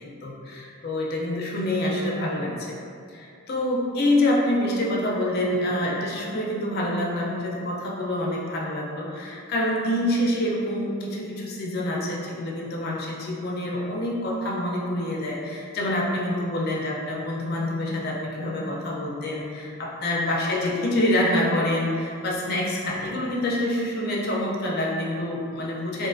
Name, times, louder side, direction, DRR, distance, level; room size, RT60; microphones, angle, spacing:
voice 1, 0.0-2.8 3.1-26.1, left 1 dB, 45° left, -3 dB, 0.4 m, -26 dB
2.5 x 2.3 x 2.4 m, 2.4 s
head